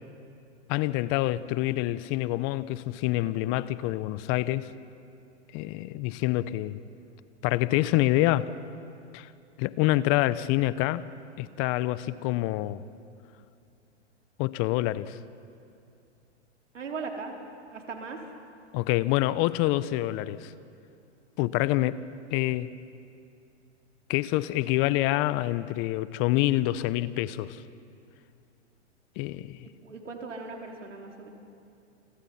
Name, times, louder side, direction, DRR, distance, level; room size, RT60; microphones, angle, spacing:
voice 1, 0.7-4.7 5.5-6.8 7.4-8.5 9.1-9.3 9.6-11.1 11.4-12.8 14.4-15.2 18.7-20.5 21.4-22.0 22.3-22.7 24.1-27.6 29.2-29.7, left 16 dB, 40° left, 0.9 m, -26 dB
voice 2, 16.7-17.3 17.7-18.2 29.8-31.3, right 4 dB, 85° right, 4.4 m, -38 dB
29.5 x 26.0 x 5.8 m
hypercardioid pair, 115°, 36 cm